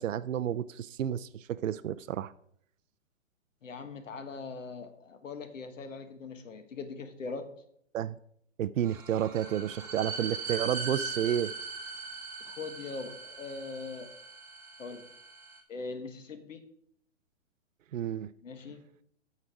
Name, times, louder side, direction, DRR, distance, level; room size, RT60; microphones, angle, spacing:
voice 1, 0.0-2.3 7.9-8.2 8.6-11.5 17.9-18.3, right 10 dB, 80° right, 0.5 m, -31 dB
voice 2, 3.6-7.5 12.4-14.1 14.8-15.0 15.7-16.6 18.4-18.8, left 4 dB, 75° left, 1.5 m, -41 dB
sound 1, 8.8-15.6, right 4 dB, 5° right, 1.0 m, -40 dB
8.6 x 6.6 x 4.8 m
hypercardioid pair, 140°, 38 cm